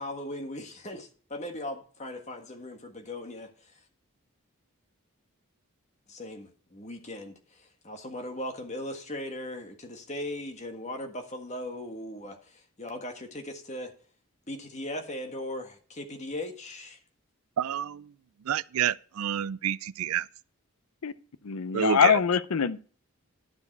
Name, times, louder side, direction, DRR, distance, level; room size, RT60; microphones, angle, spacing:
voice 1, 0.0-3.8 6.1-13.9 14.5-17.0, left 1 dB, 30° left, 1.6 m, -38 dB
voice 2, 17.6-18.1 18.4-20.3 21.7-22.2, right 9 dB, 80° right, 0.4 m, -29 dB
voice 3, 21.4-22.8, left 7 dB, 85° left, 0.6 m, -23 dB
11.5 x 7.2 x 4.6 m
head